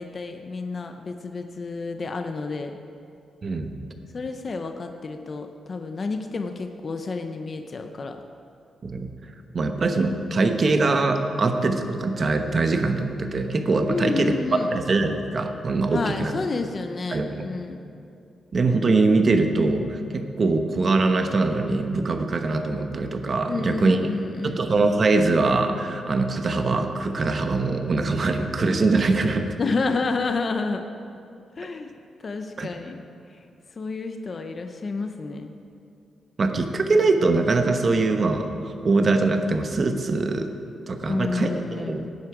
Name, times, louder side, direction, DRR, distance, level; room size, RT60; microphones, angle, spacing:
voice 1, 0.0-2.8 4.1-8.2 13.9-14.7 15.8-17.8 23.4-24.6 29.6-30.9 31.6-31.9 32.2-33.0 33.8-35.5 41.0-42.2, left 4 dB, 35° left, 6 dB, 0.6 m, -30 dB
voice 2, 3.4-3.8 8.8-9.1 9.5-16.3 17.1-17.5 18.5-24.1 24.4-29.5 32.6-32.7 36.4-40.5 40.9-42.0, right 3 dB, 35° right, 6 dB, 0.9 m, -23 dB
17.5 x 9.7 x 4.9 m, 2.6 s
wide cardioid pair, 145°, 0 cm